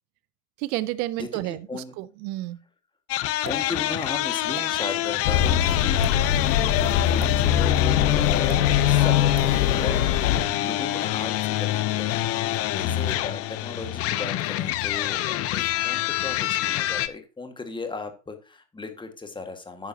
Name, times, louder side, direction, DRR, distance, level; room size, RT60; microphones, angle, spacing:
voice 1, 0.6-2.6, right 16 dB, 20° right, 0.3 m, -31 dB
sound 1, 3.1-17.1, left 14 dB, 30° left, 0.7 m, -27 dB
voice 2, 3.4-6.3 6.9-19.9, left 3 dB, 10° left, 1.7 m, -36 dB
sound 2, 3.4-3.7 4.5-4.7 5.9-6.2 7.2-7.4 8.5-8.6 9.4-9.5, right 10 dB, 40° right, 1.6 m, -38 dB
sound 3, 5.2-10.5, left 10 dB, 55° left, 1.2 m, -22 dB
11.0 x 9.1 x 2.8 m
figure-of-eight pair, 90°, 49 cm